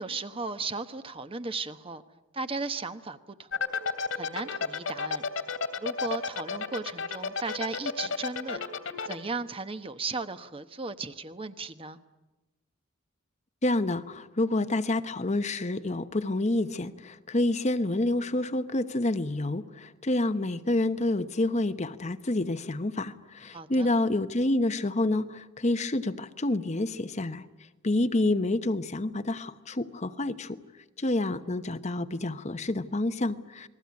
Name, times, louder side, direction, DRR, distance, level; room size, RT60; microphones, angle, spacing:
voice 1, 0.0-2.0 2.3-3.7 4.1-5.2 5.8-8.6 9.0-12.0 23.5-23.9, right 3 dB, 25° right, 10 dB, 1.0 m, -36 dB
sound 1, 3.5-9.2, left 5 dB, 75° left, 2.7 m, -30 dB
voice 2, 13.6-27.5 27.8-30.6 31.0-33.7, left 2 dB, 35° left, 10 dB, 0.9 m, -28 dB
29.0 x 20.5 x 9.6 m, 1.1 s
head